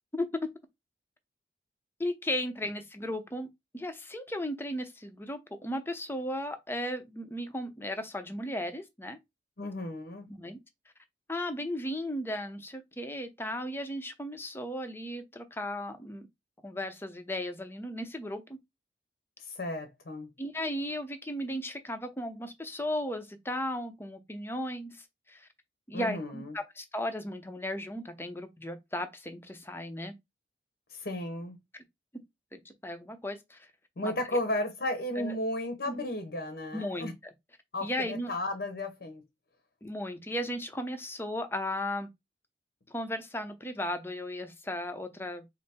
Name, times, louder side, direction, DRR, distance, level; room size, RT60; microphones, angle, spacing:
voice 1, 0.1-0.5 2.0-3.5 3.7-9.2 10.3-10.6 11.3-16.3 16.6-18.6 20.4-25.5 25.9-30.1 32.5-33.7 34.0-34.1 35.2-35.4 35.9-36.0 36.7-37.3 37.8-38.3 39.8-42.1 42.9-45.4, left 1 dB, 15° left, 0.7 m, -35 dB
voice 2, 9.6-10.3 19.4-20.3 25.9-26.5 30.9-31.6 34.0-37.1 37.7-39.2, left 1 dB, 60° left, 0.9 m, -34 dB
5.3 x 2.0 x 4.2 m
head